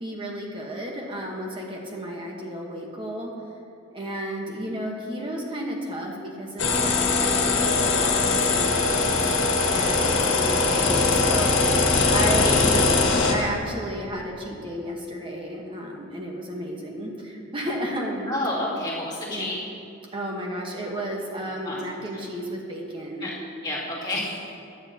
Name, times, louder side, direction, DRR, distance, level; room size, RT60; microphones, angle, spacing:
voice 1, 0.0-3.3 3.9-18.3 19.3-19.5 20.1-23.3, equal, 25° right, -1 dB, 1.1 m, -33 dB
sound 1, 6.6-13.3, left 3 dB, 70° left, 1.6 m, -21 dB
voice 2, 10.4-10.8 12.0-12.6 18.3-19.6 21.7-21.8 23.2-23.3 23.6-24.4, left 1 dB, 20° left, -9 dB, 2.6 m, -30 dB
16.0 x 10.5 x 2.8 m, 2.6 s
head